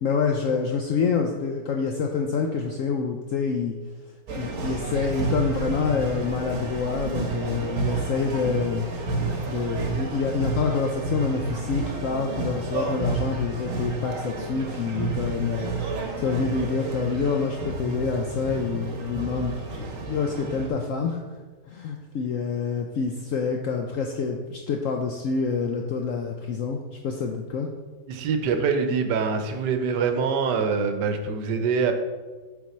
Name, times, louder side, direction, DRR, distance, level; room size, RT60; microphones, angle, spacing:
voice 1, 0.0-3.7 4.3-8.9 9.5-15.8 16.2-21.2 21.7-27.7, left 5 dB, 75° left, 2 dB, 0.7 m, -27 dB
sound 1, 4.3-20.7, right 3 dB, 55° right, 1.1 m, -30 dB
voice 2, 28.1-31.9, right 5 dB, 80° right, 6 dB, 1.3 m, -24 dB
7.0 x 4.0 x 4.2 m, 1.3 s
omnidirectional pair, 1.9 m